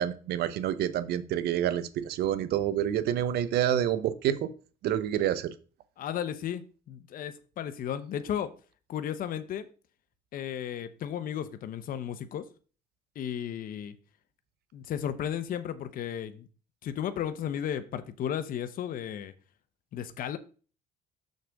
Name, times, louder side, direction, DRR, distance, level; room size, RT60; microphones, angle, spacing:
voice 1, 0.0-4.5 4.8-5.5, right 10 dB, 70° right, 0.8 m, -28 dB
voice 2, 6.0-8.5 8.9-9.7 10.3-12.4 13.2-13.9 14.7-16.5 16.8-19.3 19.9-20.4, left 9 dB, 55° left, 0.8 m, -34 dB
6.5 x 6.5 x 3.5 m
cardioid pair, 110°, 17 cm